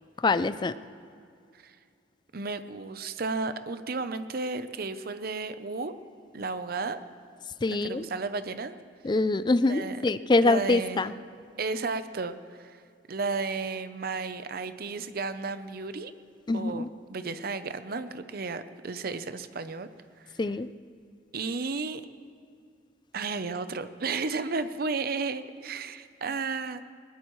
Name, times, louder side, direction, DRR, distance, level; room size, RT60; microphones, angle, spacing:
voice 1, 0.2-0.7 7.6-8.1 9.0-11.1 16.5-16.9 20.4-20.7, left 2 dB, 25° left, 14 dB, 0.4 m, -24 dB
voice 2, 2.3-5.9 6.3-7.0 7.7-8.7 9.7-10.0 10.4-11.0 11.6-12.8 13.1-16.1 16.5-19.9 20.2-20.3 21.3-22.0 23.1-26.8, right 4 dB, 50° right, 11 dB, 0.7 m, -33 dB
20.5 x 19.0 x 3.1 m, 2.3 s
head